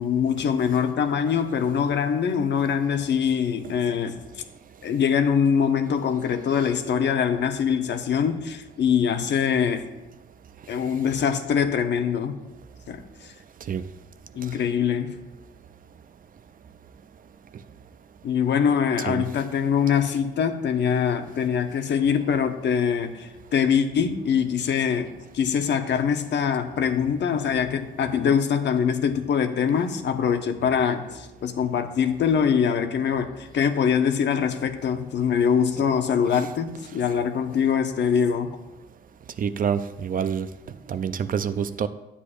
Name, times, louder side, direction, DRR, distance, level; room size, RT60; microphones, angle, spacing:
voice 1, 0.0-4.2 4.8-9.9 10.7-12.4 12.9-13.0 14.3-15.2 18.2-38.5, left 7 dB, 60° left, 7 dB, 0.8 m, -23 dB
voice 2, 39.4-40.5 40.9-41.9, right 7 dB, 45° right, 13 dB, 0.5 m, -27 dB
9.9 x 8.2 x 2.5 m, 1.0 s
cardioid pair, 90°, 20 cm